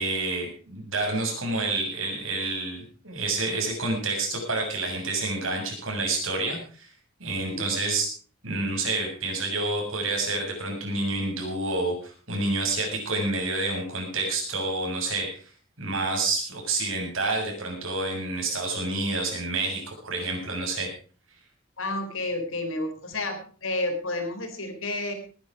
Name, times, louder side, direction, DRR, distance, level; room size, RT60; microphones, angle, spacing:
voice 1, 0.0-6.9 7.2-8.1 8.4-15.4 15.8-20.9, right 2 dB, 70° right, 1 dB, 7.0 m, -28 dB
voice 2, 21.8-25.1, left 2 dB, 75° left, 6 dB, 3.9 m, -30 dB
19.5 x 10.5 x 4.8 m, 0.40 s
head